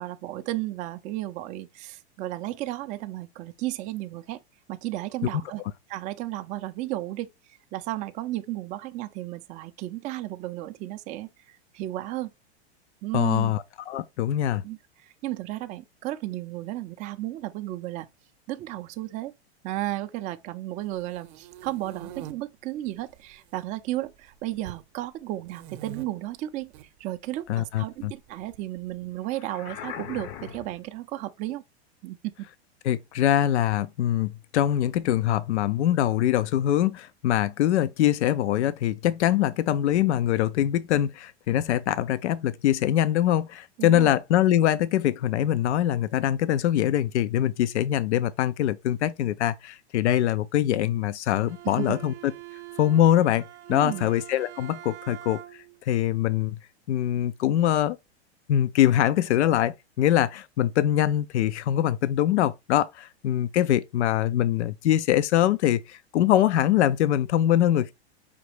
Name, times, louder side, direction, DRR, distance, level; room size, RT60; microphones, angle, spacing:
voice 1, 0.0-4.4 4.7-5.6 5.9-7.3 7.7-12.3 13.0-13.5 14.6-18.1 18.5-19.3 19.6-26.7 27.0-31.6 32.0-32.2 43.8-44.1 51.6-52.0 53.7-54.1, right 16 dB, 25° right, 0.3 m, -33 dB
voice 2, 13.1-14.6 27.5-28.1 32.8-52.1 52.8-55.4 55.9-56.6 56.9-58.0 58.5-67.9, left 12 dB, 85° left, 0.5 m, -23 dB
sound 1, 20.9-22.3 23.0-23.6 23.9-24.8 25.4-26.1 26.6-26.9 28.0-28.9, right 11 dB, 50° right, 0.7 m, -43 dB
sound 2, 29.3-30.9, left 9 dB, 40° left, 0.6 m, -39 dB
Bowed string instrument, 51.5-55.8, right 14 dB, 85° right, 0.6 m, -44 dB
5.1 x 2.8 x 3.2 m
hypercardioid pair, 125°, 33 cm